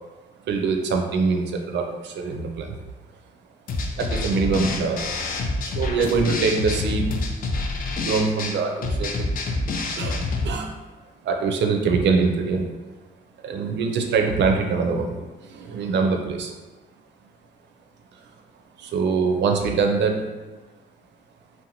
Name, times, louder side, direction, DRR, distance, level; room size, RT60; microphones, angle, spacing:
voice 1, 0.5-2.8 4.0-5.0 5.7-7.3 8.0-9.4 10.0-10.8 11.2-12.7 13.4-16.5 18.8-20.3, right 4 dB, 65° right, 4 dB, 0.4 m, -23 dB
sound 1, 3.7-10.5, left 2 dB, 45° left, 0.4 m, -27 dB
2.6 x 2.1 x 2.8 m, 1.2 s
cardioid pair, 90°, 20 cm